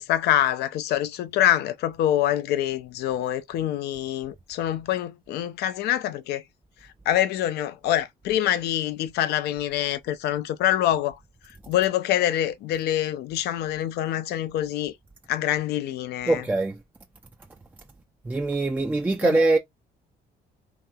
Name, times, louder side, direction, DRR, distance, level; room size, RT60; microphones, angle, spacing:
voice 1, 0.0-6.4 7.1-11.2 11.7-14.9 15.3-16.4 19.2-19.4, left 12 dB, 75° left, 0.5 m, -25 dB
voice 2, 16.2-16.8 18.2-19.6, right 2 dB, 10° right, 0.4 m, -22 dB
3.0 x 2.8 x 2.2 m
cardioid pair, 110°, 17 cm